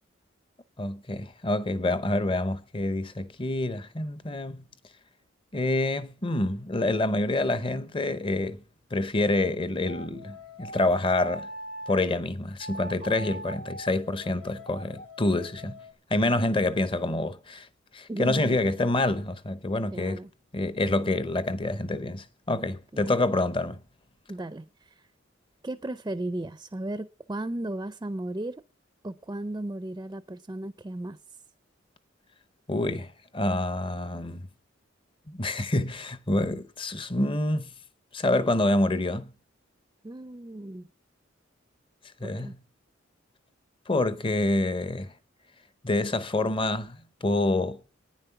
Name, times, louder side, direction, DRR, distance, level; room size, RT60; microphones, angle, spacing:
voice 1, 0.8-4.7 5.5-8.6 8.9-11.5 11.9-15.8 16.1-17.7 17.9-20.2 20.5-23.8 32.7-34.4 35.3-37.7 38.1-39.3 42.2-42.6 43.9-45.1 45.8-47.8, left 2 dB, 25° left, 0.7 m, -27 dB
sound 1, 9.9-12.1 12.6-15.9, equal, 80° left, 2.1 m, -41 dB
voice 2, 18.1-18.6 19.9-20.3 22.9-23.1 24.3-24.9 25.6-28.6 29.0-31.2 40.0-40.9 42.2-42.5, right 1 dB, 20° right, 0.5 m, -35 dB
11.5 x 9.7 x 5.8 m
head